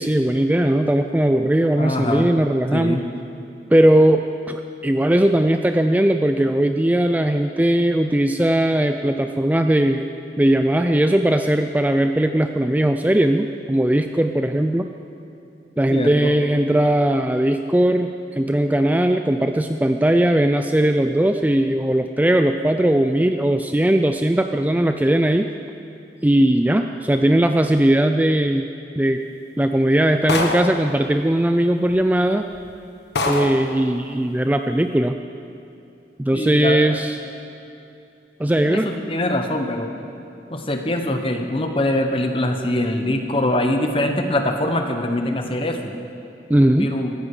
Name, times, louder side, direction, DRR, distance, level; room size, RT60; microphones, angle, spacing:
voice 1, 0.0-3.0 3.7-10.1 10.4-14.9 15.8-25.5 26.2-28.7 29.0-29.2 29.6-32.4 33.3-35.2 36.2-37.2 38.4-38.9 46.5-47.0, right 1 dB, 10° right, 6 dB, 0.4 m, -19 dB
voice 2, 1.8-2.3 2.7-3.0 15.9-16.4 36.3-37.0 38.6-39.9 40.5-45.9 46.8-47.1, left 1 dB, 30° left, 5 dB, 1.2 m, -23 dB
sound 1, 30.3-30.9 31.9-32.0 32.5-32.7 33.2-33.7, left 2 dB, 75° left, 1.2 m, -24 dB
17.0 x 15.0 x 5.0 m, 2.8 s
head